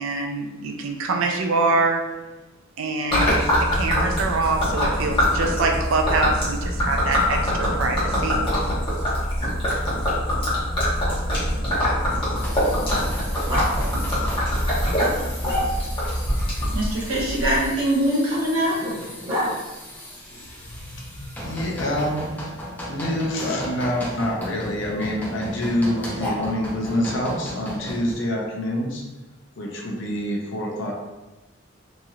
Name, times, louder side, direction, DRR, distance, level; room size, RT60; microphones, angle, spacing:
voice 1, 0.0-2.0 2.8-8.4, right 3 dB, 70° right, 2 dB, 0.3 m, -25 dB
Gurgling / Liquid, 3.1-17.7, equal, 25° left, 1.0 m, -23 dB
Growling, 9.4-12.8 13.5-13.7 15.0-16.1 17.4-19.5 21.4-22.1 23.4-23.6 25.9-26.7, equal, 20° right, 0.9 m, -33 dB
sound 1, 12.3-28.1, equal, 10° left, 0.5 m, -36 dB
voice 2, 16.7-18.8, right 1 dB, 85° right, -6 dB, 1.1 m, -22 dB
voice 3, 20.9-22.2 22.9-29.0 29.6-30.9, left 1 dB, 60° left, -1 dB, 0.6 m, -26 dB
3.0 x 2.7 x 2.3 m, 1.1 s
head